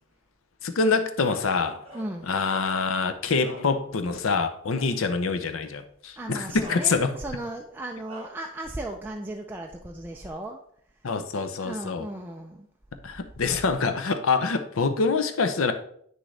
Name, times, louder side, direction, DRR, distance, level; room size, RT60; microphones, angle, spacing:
voice 1, 0.6-1.8 2.3-7.1 11.0-12.1 13.0-15.7, left 4 dB, 70° left, 8 dB, 0.6 m, -25 dB
Bark, 1.2-2.3 2.9-4.2 4.6-4.8 5.9-6.0 6.6-7.4 8.1-8.5, right 1 dB, 25° right, 1.9 m, -46 dB
voice 2, 1.9-2.3 6.2-10.6 11.6-12.7, right 1 dB, 10° right, 1 dB, 0.4 m, -36 dB
9.1 x 6.2 x 3.3 m, 0.65 s
head